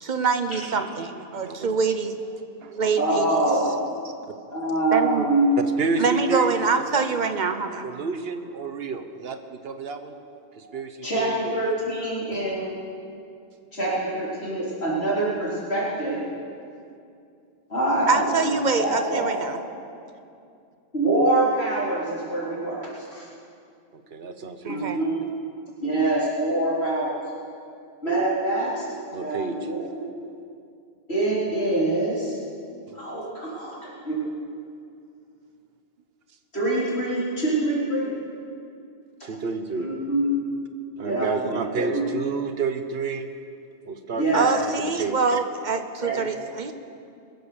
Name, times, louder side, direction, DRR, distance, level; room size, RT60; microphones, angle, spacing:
voice 1, 0.0-2.1 2.7-3.4 4.9-5.3 6.0-7.9 18.1-19.6 24.6-25.0 44.3-46.7, right 5 dB, 45° right, 8 dB, 1.0 m, -25 dB
voice 2, 1.4-1.8 2.6-2.8 5.8-7.3 7.8-10.2 10.6-11.4 23.9-25.0 29.1-29.6 32.9-33.0 39.2-39.9 41.0-43.3 43.8-45.2, right 4 dB, 65° right, 8 dB, 1.1 m, -30 dB
voice 3, 3.0-3.7 4.5-5.5 11.0-12.6 13.7-16.2 17.7-19.4 20.9-23.3 24.7-25.2 25.8-27.2 28.0-28.9 29.2-30.0 31.1-32.4 32.9-34.3 36.5-38.1 39.7-40.3 41.0-42.0 44.1-44.5 46.0-46.2, right 2 dB, 75° left, -8 dB, 4.2 m, -25 dB
22.5 x 7.9 x 6.9 m, 2.5 s
omnidirectional pair, 1.1 m